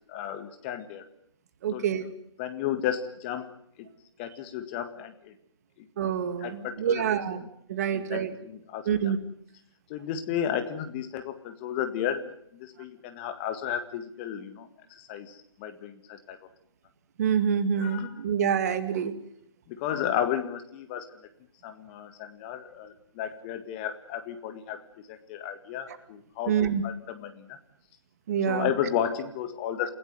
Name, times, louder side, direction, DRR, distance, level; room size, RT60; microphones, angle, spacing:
voice 1, 0.1-1.0 1.7-1.8 2.4-3.5 4.2-5.3 6.4-7.0 7.9-9.1 9.9-16.4 17.8-18.1 19.7-21.1 21.6-27.6 28.4-29.9, left 9 dB, 20° left, 8 dB, 1.8 m, -33 dB
voice 2, 1.6-2.1 6.0-7.4 7.7-8.4 8.9-9.2 17.2-19.1 26.5-26.8 28.3-28.7, right 8 dB, 30° right, 11 dB, 2.1 m, -26 dB
29.0 x 16.0 x 9.5 m, 0.72 s
figure-of-eight pair, 145°, 15 cm